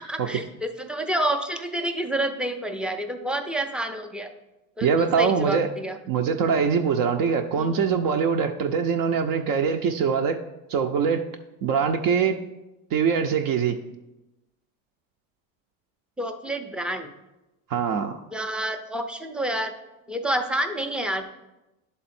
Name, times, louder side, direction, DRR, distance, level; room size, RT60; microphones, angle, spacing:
voice 1, 0.0-4.3 4.8-6.0 7.6-7.8 16.2-17.1 18.3-19.7 20.1-21.3, right 1 dB, ahead, 5 dB, 0.4 m, -29 dB
voice 2, 4.8-5.7 6.1-10.4 10.7-11.3 11.6-12.4 12.9-13.8 17.7-18.2, right 6 dB, 55° right, 4 dB, 0.6 m, -23 dB
11.0 x 3.6 x 4.2 m, 0.99 s
supercardioid pair, 110°, 41 cm